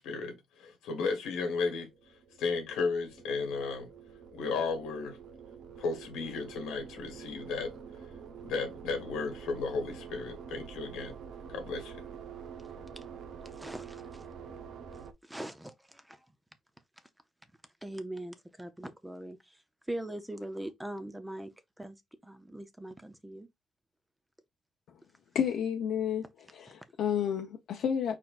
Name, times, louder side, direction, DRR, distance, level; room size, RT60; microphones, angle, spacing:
voice 1, 0.0-1.9 2.4-3.9 4.3-5.2 5.8-7.7 8.4-11.2 11.5-12.0, left 4 dB, 85° left, 1.5 m, -34 dB
sound 1, 1.8-15.1, right 7 dB, 65° right, 0.8 m, -47 dB
voice 2, 13.4-14.2 15.2-16.3 17.8-19.6 19.9-21.5 21.8-22.0 22.2-23.5, right 1 dB, 5° right, 0.7 m, -41 dB
voice 3, 25.3-28.1, left 8 dB, 65° left, 0.8 m, -31 dB
4.4 x 4.3 x 2.5 m
cardioid pair, 110°, 0 cm